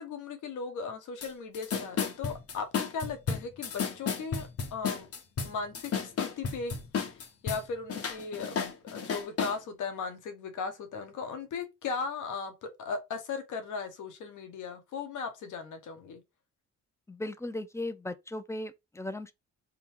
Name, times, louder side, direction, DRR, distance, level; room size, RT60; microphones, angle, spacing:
voice 1, 0.0-5.1 5.4-16.2, left 5 dB, 80° left, 1.1 m, -37 dB
sound 1, 1.2-1.3 1.5-7.6 7.9-9.6, left 6 dB, 50° left, 1.0 m, -32 dB
voice 2, 17.1-19.3, left 1 dB, 10° left, 0.4 m, -37 dB
3.8 x 2.3 x 4.4 m
cardioid pair, 90°, 30 cm